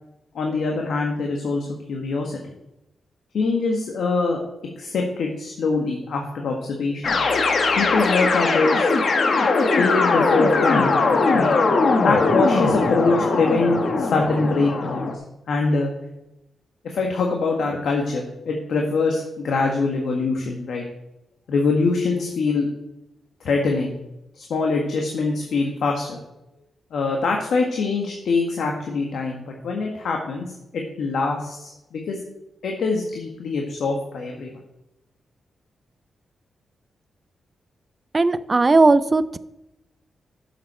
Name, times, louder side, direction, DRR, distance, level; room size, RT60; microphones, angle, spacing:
voice 1, 0.3-2.5 3.3-4.4 4.8-7.1 7.8-8.9 9.8-11.0 11.3-11.5 12.0-15.1 15.5-15.9 16.8-20.8 21.5-22.7 23.4-24.0 24.3-26.2 26.9-30.5 30.7-32.2 32.6-34.5, left 3 dB, 70° left, 1 dB, 1.5 m, -23 dB
sound 1, 7.0-15.1, left 3 dB, 50° left, 1.2 m, -20 dB
voice 2, 38.1-39.4, right 3 dB, 25° right, 14 dB, 0.4 m, -17 dB
11.0 x 7.6 x 4.3 m, 0.91 s
wide cardioid pair, 145°, 0 cm